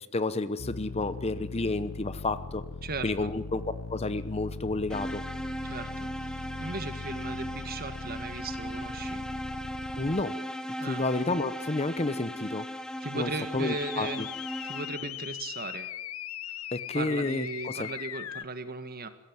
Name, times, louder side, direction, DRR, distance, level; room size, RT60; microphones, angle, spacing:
voice 1, 0.1-2.6 3.0-3.6 3.9-5.2 10.0-10.4 10.9-12.7 13.1-14.3 16.7-17.9, left 2 dB, 30° left, 13 dB, 0.9 m, -30 dB
sound 1, 0.6-10.2 13.6-18.4, left 6 dB, 70° left, 0.7 m, -40 dB
voice 2, 2.8-3.3 5.6-9.3 10.8-11.0 13.0-14.3 14.6-15.9 16.9-19.1, right 3 dB, 45° right, 10 dB, 1.7 m, -37 dB
sound 2, 4.9-15.2, equal, 5° left, 1.2 m, -37 dB
21.0 x 16.5 x 9.6 m, 1.0 s
head